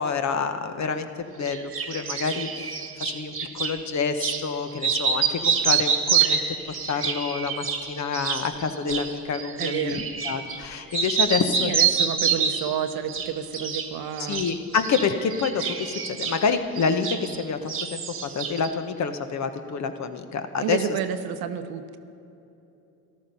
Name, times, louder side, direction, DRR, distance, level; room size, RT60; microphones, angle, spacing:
voice 1, 0.0-6.4 6.9-11.7 14.3-18.0 18.3-20.8, left 5 dB, 40° left, 9 dB, 1.1 m, -28 dB
sound 1, 1.5-3.8 4.2-4.4 4.8-10.6 10.9-12.7 13.1-13.9 14.2-17.4 17.7-18.7, right 7 dB, 30° right, 1.5 m, -27 dB
voice 2, 9.6-10.0 11.6-14.5 20.6-22.0, right 9 dB, 55° right, 9 dB, 0.9 m, -30 dB
13.5 x 12.5 x 5.4 m, 2.8 s
supercardioid pair, 80°, 43 cm